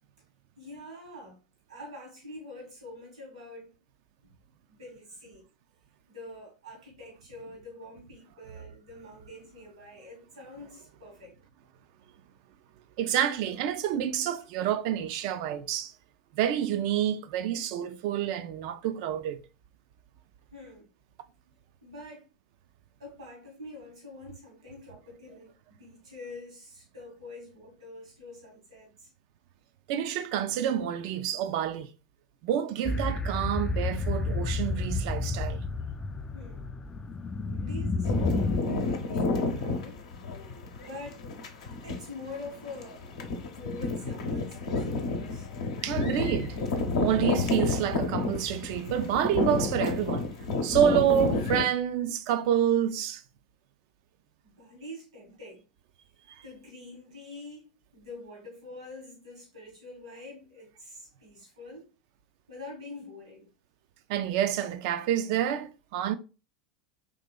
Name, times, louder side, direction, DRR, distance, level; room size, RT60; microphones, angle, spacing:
voice 1, 0.6-1.4 1.7-3.7 4.2-4.4 4.7-5.5 6.1-11.3 14.0-14.1 20.5-20.9 21.8-22.3 23.0-29.1 36.3-36.7 37.4-40.0 40.8-41.2 41.8-43.0 43.4-45.5 54.4-55.7 56.4-61.9 62.5-63.5, left 2 dB, 85° right, 1.6 m, -46 dB
voice 2, 13.0-15.9 16.3-19.4 29.9-31.9 32.4-35.6 45.8-46.6 47.0-50.3 50.6-53.2 56.3-56.4 64.1-66.1, right 10 dB, 60° right, 0.4 m, -28 dB
sound 1, 32.9-38.6, left 3 dB, 20° left, 0.3 m, -30 dB
sound 2, 38.0-51.6, left 3 dB, 70° left, 0.7 m, -30 dB
3.7 x 2.9 x 2.2 m
hypercardioid pair, 85°, 3 cm